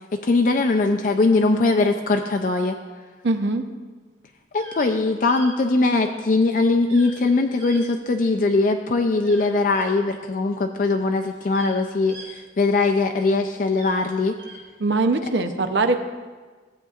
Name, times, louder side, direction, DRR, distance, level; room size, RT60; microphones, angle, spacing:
voice 1, 0.2-2.8 4.5-14.3, left 3 dB, 45° left, 4 dB, 0.4 m, -21 dB
voice 2, 3.2-3.6 14.8-16.0, right 3 dB, 70° right, 7 dB, 0.6 m, -21 dB
sound 1, 4.4-4.9 5.3-5.5 6.9-7.2 7.6-8.5 9.2-9.9 10.8-10.9 11.2-13.0 13.6-14.6, right 2 dB, 85° right, 2.0 m, -43 dB
15.0 x 8.0 x 2.4 m, 1.4 s
head